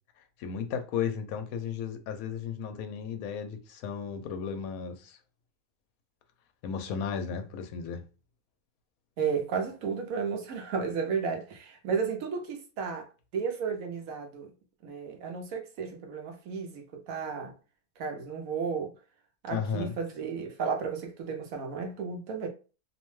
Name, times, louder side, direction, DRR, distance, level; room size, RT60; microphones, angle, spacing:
voice 1, 0.4-5.2 6.6-8.0 19.5-19.9, left 7 dB, 75° left, 1.0 m, -34 dB
voice 2, 9.2-13.1 13.3-14.5 14.8-17.5 18.0-18.9 19.4-22.5, right 6 dB, 70° right, 1.0 m, -33 dB
2.8 x 2.1 x 3.0 m
omnidirectional pair, 1.6 m